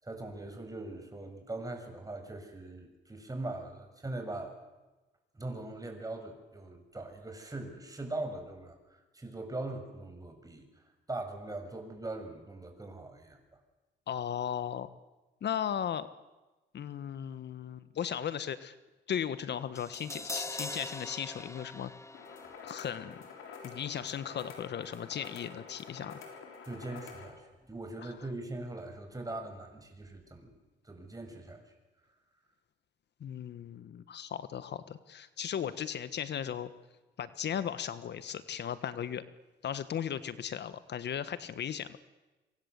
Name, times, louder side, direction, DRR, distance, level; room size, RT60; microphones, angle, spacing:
voice 1, 0.0-4.5 5.3-8.8 9.1-10.7 11.1-13.6 26.6-30.5 30.8-31.6, right 2 dB, 15° right, 5 dB, 6.8 m, -41 dB
voice 2, 14.1-14.9 15.4-16.1 16.7-18.8 19.1-21.9 22.6-23.2 23.6-26.2 28.0-28.1 33.2-36.7 37.2-39.2 39.6-42.0, left 9 dB, 60° left, 13 dB, 1.4 m, -36 dB
Crash cymbal, 19.8-25.9 26.2-26.3, left 2 dB, 15° left, 1.5 m, -45 dB
sound 1, 22.1-27.3, left 5 dB, 85° left, 6.4 m, -48 dB
27.0 x 25.0 x 8.2 m, 1.1 s
cardioid pair, 90°, 20 cm